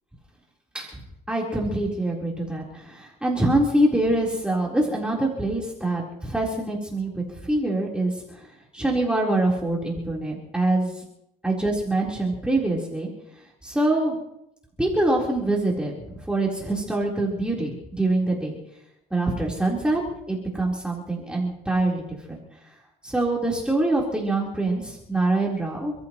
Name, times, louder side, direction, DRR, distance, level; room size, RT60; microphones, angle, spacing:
voice 1, 1.3-8.5 8.7-11.0 11.4-13.1 13.6-14.2 14.8-18.6 19.1-20.0 20.3-22.4 23.0-25.9, right 2 dB, 5° right, -4 dB, 4.0 m, -25 dB
29.5 x 14.5 x 3.1 m, 0.82 s
cardioid pair, 110°, 17 cm